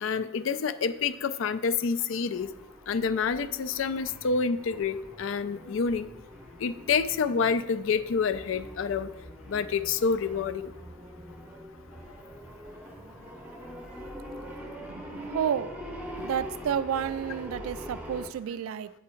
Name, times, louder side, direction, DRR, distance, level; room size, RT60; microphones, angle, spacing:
voice 1, 0.0-2.5 2.9-6.1 6.6-9.1 9.5-10.7, left 5 dB, 70° left, 13 dB, 0.4 m, -28 dB
sound 1, 2.3-18.3, equal, 5° right, 0.7 m, -43 dB
voice 2, 14.9-15.7 16.2-18.9, right 8 dB, 90° right, 15 dB, 0.3 m, -31 dB
8.6 x 3.5 x 4.4 m, 0.94 s
head